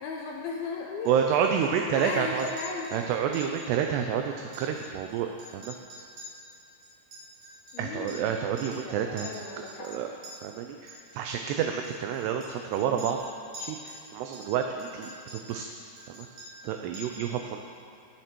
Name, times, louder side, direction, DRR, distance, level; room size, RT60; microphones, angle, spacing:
voice 1, 0.0-2.9 7.7-8.2 8.8-9.9 12.8-13.1, left 4 dB, 75° left, 0 dB, 2.3 m, -36 dB
voice 2, 1.0-2.5 2.9-5.7 7.8-9.3 9.6-10.1 10.4-13.2 13.6-15.7 16.1-16.3 16.6-17.6, right 8 dB, 80° right, 4 dB, 2.5 m, -29 dB
Chink clink, 1.1-1.7 2.0-2.1 2.4-3.0 3.3-3.7 3.9-4.0 4.4-5.1 5.4-8.3 8.6-8.9 9.2-10.3 10.9-11.2 11.8-14.0 14.3-15.6 16.0-16.7 16.9-17.3, left 1 dB, 55° right, 4.6 m, -46 dB
18.0 x 7.7 x 4.5 m, 2.5 s
omnidirectional pair, 5.2 m